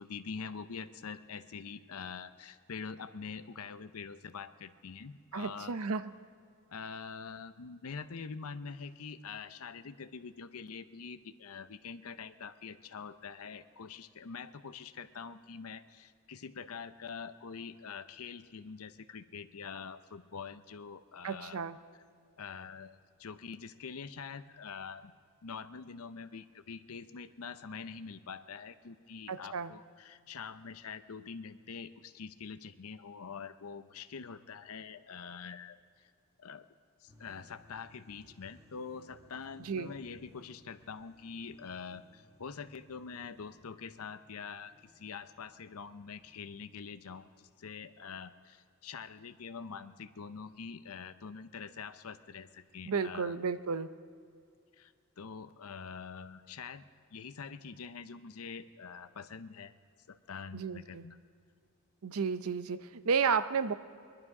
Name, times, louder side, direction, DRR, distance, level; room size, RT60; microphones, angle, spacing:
voice 1, 0.0-5.9 6.7-21.6 22.4-25.1 25.4-36.1 36.4-36.7 37.0-53.4 54.8-59.7 60.1-61.2, left 5 dB, 80° left, 12 dB, 0.6 m, -45 dB
voice 2, 5.3-6.0 21.2-21.8 29.3-29.7 39.6-39.9 52.9-53.9 60.5-61.0 62.0-63.7, right 5 dB, 75° right, 13 dB, 0.6 m, -32 dB
sound 1, 37.1-48.0, left 2 dB, 15° right, 1.6 m, -63 dB
22.0 x 11.5 x 4.8 m, 2.2 s
head